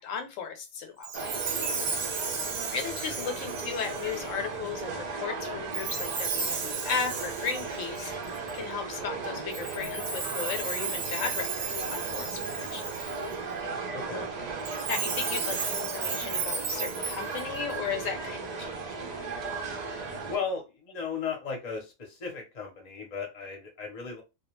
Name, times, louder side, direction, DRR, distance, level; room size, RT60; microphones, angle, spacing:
voice 1, 0.0-1.5 2.7-8.1 8.5-12.8 14.9-19.1, left 6 dB, 80° left, 5 dB, 1.0 m, -35 dB
Chime, 1.0-4.4 5.7-8.6 9.5-13.3 14.6-17.7, right 5 dB, 90° right, 1.0 m, -34 dB
sound 1, 1.1-20.4, right 4 dB, 50° right, 0.5 m, -36 dB
voice 2, 13.9-14.3 20.3-24.2, left 5 dB, 40° left, 2 dB, 0.7 m, -36 dB
2.4 x 2.2 x 2.9 m, 0.26 s
omnidirectional pair, 1.3 m